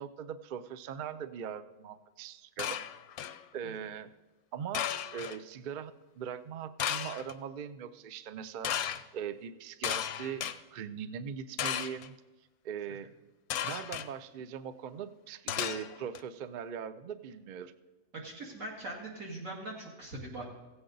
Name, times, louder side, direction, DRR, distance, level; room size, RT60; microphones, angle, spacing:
voice 1, 0.0-2.8 3.5-4.1 4.5-8.7 9.1-10.5 10.7-12.1 12.6-13.1 13.6-17.7, right 7 dB, 85° right, 12 dB, 0.4 m, -40 dB
sound 1, 2.6-3.4 4.7-5.4 6.8-7.3 8.6-9.0 9.8-10.6 11.6-12.1 13.5-14.1 15.5-16.2, left 10 dB, 85° left, 1.1 m, -34 dB
voice 2, 18.1-20.4, right 2 dB, 65° right, -2 dB, 2.5 m, -41 dB
16.0 x 7.9 x 3.9 m, 1.1 s
omnidirectional pair, 1.5 m